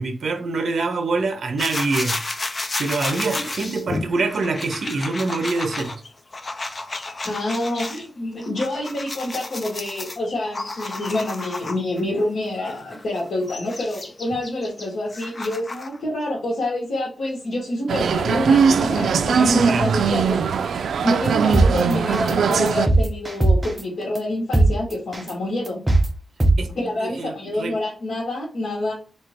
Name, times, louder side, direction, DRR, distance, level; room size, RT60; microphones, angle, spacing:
voice 1, 0.0-2.2 2.8-6.0 19.6-20.0 26.6-27.8, right 3 dB, 65° right, 0.8 m, -25 dB
sound 1, 1.6-8.0 8.4-12.0 12.6-16.0, left 2 dB, 30° left, 0.5 m, -32 dB
voice 2, 3.1-3.4 7.2-25.8 26.8-28.9, left 1 dB, 80° left, 1.6 m, -27 dB
sound 2, 17.9-22.9, right 6 dB, 90° right, 0.3 m, -20 dB
sound 3, 21.5-21.7 22.1-22.3 22.7-23.8 24.2-24.3 24.5-24.7 25.1-25.3 25.7-26.1 26.4-26.5, right 2 dB, 15° right, 0.6 m, -16 dB
3.4 x 2.8 x 4.3 m
wide cardioid pair, 175°, 0 cm